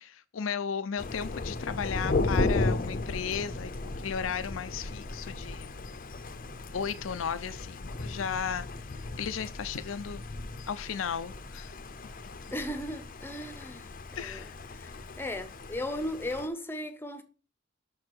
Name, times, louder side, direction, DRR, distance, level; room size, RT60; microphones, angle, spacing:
voice 1, 0.0-5.8 6.7-8.7 9.2-10.2 10.7-11.8 14.2-14.9, left 7 dB, 90° left, 0.5 m, -35 dB
Thunder, 1.0-16.5, left 2 dB, 45° left, 0.7 m, -35 dB
voice 2, 12.5-13.9 14.2-17.2, left 1 dB, 10° left, 0.8 m, -37 dB
6.4 x 4.7 x 6.1 m
head